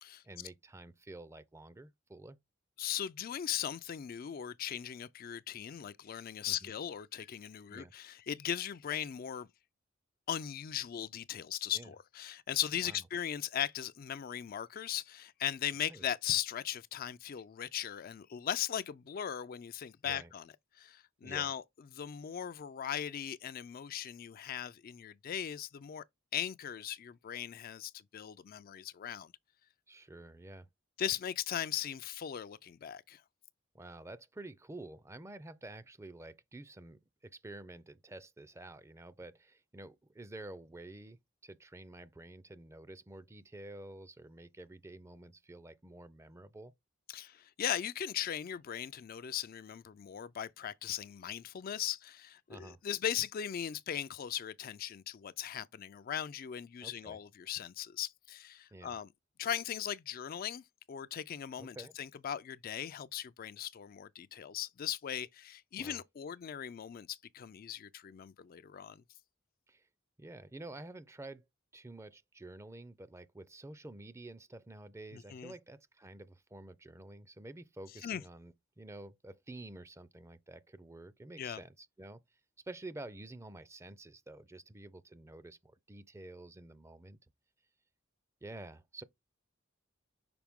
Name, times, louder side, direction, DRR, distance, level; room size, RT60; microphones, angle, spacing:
voice 1, 0.2-2.4 6.4-6.7 7.7-7.9 11.7-11.9 12.8-13.0 15.8-16.1 20.0-20.3 21.2-21.5 29.9-30.7 33.7-46.7 52.5-52.8 56.8-57.2 58.7-59.0 61.6-62.0 65.8-66.0 69.7-69.9 70.2-71.5 71.7-82.2 82.6-87.2 88.4-89.0, right 2 dB, 15° right, 0.5 m, -50 dB
voice 2, 2.8-9.5 10.3-21.6 21.9-26.0 26.3-29.3 31.0-33.2 47.1-59.1 59.4-69.0 75.1-75.5 78.0-78.2 81.4-81.6, left 10 dB, 45° left, 0.4 m, -38 dB
5.9 x 4.5 x 3.5 m
head